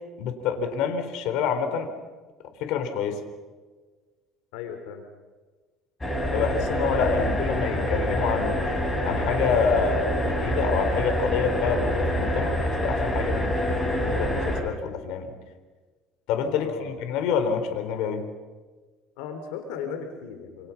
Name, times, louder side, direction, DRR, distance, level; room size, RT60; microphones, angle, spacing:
voice 1, 0.2-1.9 2.6-3.2 6.3-15.3 16.3-18.2, left 6 dB, 70° left, 7 dB, 4.0 m, -27 dB
voice 2, 4.5-5.0 16.6-16.9 19.2-20.7, left 7 dB, 90° left, 6 dB, 3.5 m, -36 dB
sound 1, 6.0-14.6, equal, 10° left, 5.6 m, -26 dB
28.0 x 27.5 x 5.9 m, 1.4 s
cardioid pair, 130°, 0 cm